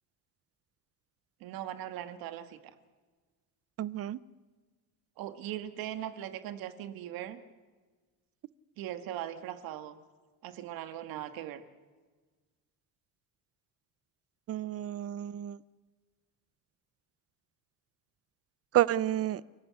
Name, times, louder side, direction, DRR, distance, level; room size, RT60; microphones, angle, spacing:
voice 1, 1.4-2.7 5.2-7.4 8.8-10.0 10.4-11.6, right 12 dB, 75° right, 10 dB, 1.9 m, -39 dB
voice 2, 3.8-4.2 14.5-15.6 18.7-19.4, right 13 dB, 40° right, 20 dB, 0.7 m, -30 dB
29.5 x 15.5 x 9.8 m, 1.4 s
cardioid pair, 155°, 36 cm